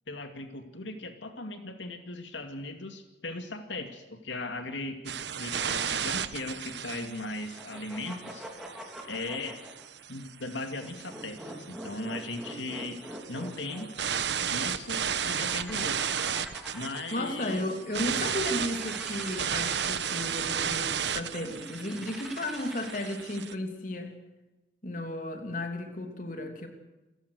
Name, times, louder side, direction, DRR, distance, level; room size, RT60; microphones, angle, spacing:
voice 1, 0.1-8.5 9.0-9.6 10.1-13.0 13.3-13.9 14.5-16.2 16.7-17.7, left 2 dB, 85° left, 6 dB, 2.5 m, -38 dB
sound 1, 5.1-23.6, right 8 dB, 75° right, 1.2 m, -34 dB
sound 2, 5.6-6.4 7.4-9.9 10.7-14.1 14.9-17.3 18.0-20.5 21.4-23.4, equal, ahead, 3.9 m, -44 dB
voice 2, 17.1-24.1 24.8-26.7, left 1 dB, 45° left, 5 dB, 3.0 m, -34 dB
28.0 x 15.5 x 6.5 m, 1.1 s
head